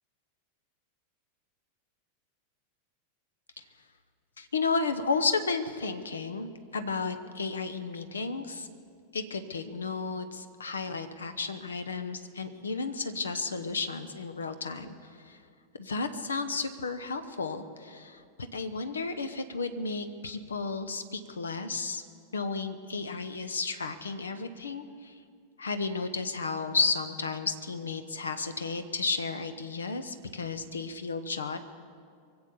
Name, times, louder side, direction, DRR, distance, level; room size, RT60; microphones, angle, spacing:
voice 1, 4.4-8.7 9.1-15.4 15.8-18.2 18.5-22.0 22.3-25.1 25.6-31.6, left 4 dB, 70° left, 10 dB, 0.9 m, -33 dB
23.5 x 7.9 x 7.1 m, 2.3 s
figure-of-eight pair, 90°, 0 cm